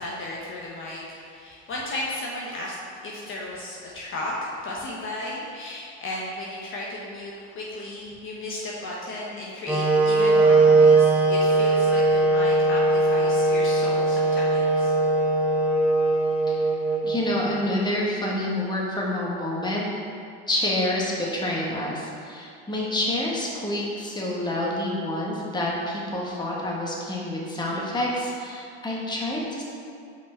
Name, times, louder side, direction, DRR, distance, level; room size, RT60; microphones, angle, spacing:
voice 1, 0.0-2.7 3.0-14.9, left 1 dB, 40° left, -4 dB, 1.1 m, -34 dB
Wind instrument woodwind instrument, 9.7-17.6, right 2 dB, 5° right, 0.9 m, -20 dB
voice 2, 17.0-19.9 20.5-29.6, left 1 dB, 15° left, -4 dB, 1.4 m, -28 dB
5.4 x 5.1 x 4.4 m, 2.3 s
supercardioid pair, 90°, 32 cm